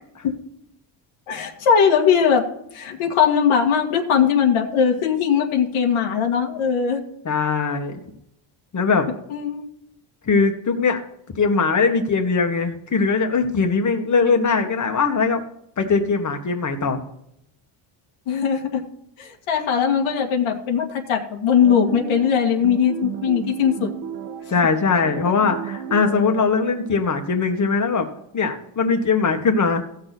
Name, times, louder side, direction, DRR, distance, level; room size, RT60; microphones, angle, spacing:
voice 1, 1.3-2.5 2.7-7.0 9.3-9.6 18.3-18.8 19.2-23.9, left 7 dB, 80° left, 1 dB, 2.0 m, -20 dB
voice 2, 7.2-8.0 8.7-9.1 10.2-11.0 11.3-15.4 15.8-17.0 24.5-28.1 28.3-29.8, left 4 dB, 35° left, 5 dB, 1.8 m, -20 dB
sound 1, 21.6-28.0, right 8 dB, 60° right, 1.4 m, -34 dB
16.0 x 6.5 x 4.2 m, 0.75 s
cardioid pair, 130°, 49 cm